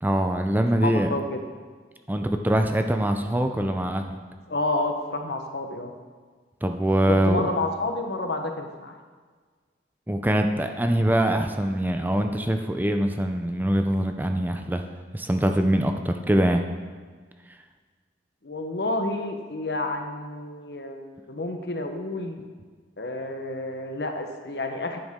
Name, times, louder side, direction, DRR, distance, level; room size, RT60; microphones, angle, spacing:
voice 1, 0.0-1.1 2.1-4.2 6.6-7.5 10.1-14.8 15.1-16.6, right 1 dB, 10° right, 5 dB, 0.5 m, -23 dB
voice 2, 0.8-1.4 4.5-5.9 7.1-8.9 18.4-21.0 21.3-22.4 23.0-25.0, left 2 dB, 70° left, 5 dB, 1.0 m, -29 dB
10.5 x 9.1 x 3.7 m, 1.5 s
head